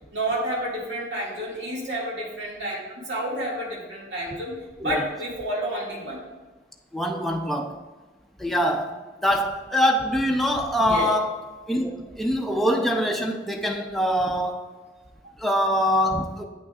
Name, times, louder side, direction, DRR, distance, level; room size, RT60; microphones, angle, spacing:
voice 1, 0.1-2.8 3.0-4.5 4.8-6.2 10.8-11.1, right 1 dB, 90° right, -4 dB, 2.0 m, -30 dB
voice 2, 6.9-7.7 8.4-11.4 11.7-14.7 15.4-16.5, equal, ahead, 2 dB, 0.5 m, -24 dB
8.8 x 6.1 x 2.4 m, 1.2 s
head